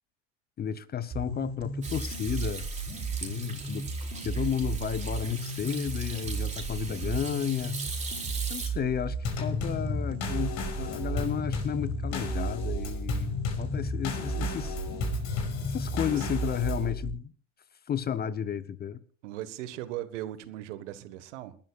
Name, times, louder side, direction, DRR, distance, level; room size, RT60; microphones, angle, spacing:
voice 1, 0.6-3.9 4.2-7.8 8.5-14.8 15.7-17.3 17.9-19.0, left 9 dB, 25° left, 0.8 m, -33 dB
sound 1, 1.1-17.1, right 4 dB, 35° right, 4.9 m, -35 dB
Hands / Sink (filling or washing), 1.8-8.7, right 4 dB, 20° right, 3.9 m, -40 dB
Drum kit / Snare drum / Bass drum, 9.2-16.9, left 5 dB, 45° left, 5.4 m, -34 dB
voice 2, 19.2-21.6, right 13 dB, 65° right, 1.5 m, -38 dB
29.0 x 12.5 x 2.4 m
hypercardioid pair, 90°, 38 cm